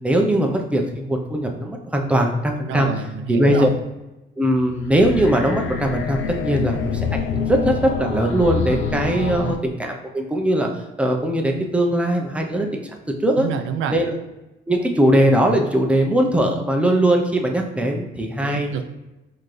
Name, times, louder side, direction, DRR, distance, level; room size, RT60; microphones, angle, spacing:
voice 1, 0.0-2.9 3.3-3.7 4.4-7.7 8.0-10.7 11.0-12.8 13.2-13.5 13.9-14.1 14.7-18.7, right 1 dB, 5° right, 1 dB, 0.8 m, -20 dB
voice 2, 2.7-3.8 9.4-9.6 13.4-14.0 18.4-18.8, right 7 dB, 85° right, 8 dB, 0.5 m, -28 dB
sound 1, 4.6-9.6, left 6 dB, 75° left, 0.6 m, -26 dB
4.1 x 3.8 x 3.3 m, 1.0 s
cardioid pair, 90°, 20 cm